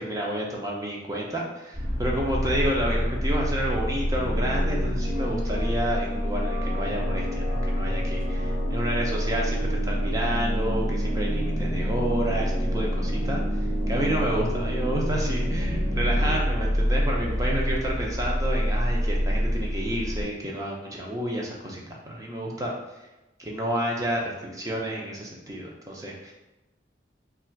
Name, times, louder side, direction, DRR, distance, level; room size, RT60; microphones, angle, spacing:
voice 1, 0.0-13.4 13.9-22.7 23.4-26.3, right 1 dB, 20° right, -2 dB, 0.6 m, -30 dB
sound 1, 1.7-20.2, equal, 35° right, 1.4 m, -27 dB
sound 2, 4.1-16.4, equal, 80° right, 1.0 m, -34 dB
3.2 x 2.5 x 4.4 m, 1.0 s
head